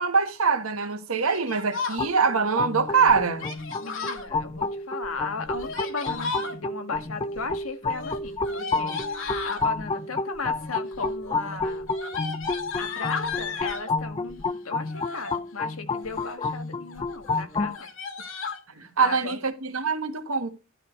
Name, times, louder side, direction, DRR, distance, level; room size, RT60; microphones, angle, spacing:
voice 1, 0.0-3.5 18.7-20.5, right 5 dB, 85° right, 1.7 m, -24 dB
Yell, 1.2-2.0 3.4-4.3 5.4-6.5 7.9-9.7 10.5-10.9 11.2-13.9 14.8-15.4 15.9-16.5 16.9-17.0 17.2-17.4 17.7-18.6, left 4 dB, 65° left, 2.5 m, -34 dB
sound 1, 2.0-17.7, left 3 dB, 25° left, 0.7 m, -30 dB
voice 2, 3.8-11.9 12.8-17.9 19.0-19.4, left 4 dB, 85° left, 1.9 m, -36 dB
12.0 x 5.0 x 5.3 m
head